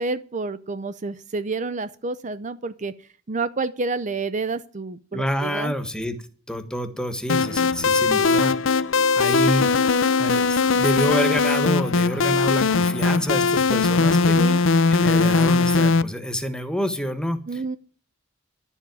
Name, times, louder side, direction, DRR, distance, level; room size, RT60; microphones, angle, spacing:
voice 1, 0.0-2.9 3.3-5.7 14.3-14.6 17.5-17.8, right 3 dB, 40° right, 14 dB, 0.6 m, -29 dB
voice 2, 5.1-6.2 6.5-8.5 9.2-9.7 10.2-14.4 14.9-17.4, equal, 5° left, 9 dB, 1.3 m, -27 dB
sound 1, 7.3-16.0, left 4 dB, 90° left, 0.6 m, -20 dB
Bowed string instrument, 7.7-10.1, left 5 dB, 80° right, 4.7 m, -51 dB
11.5 x 7.2 x 9.3 m, 0.43 s
head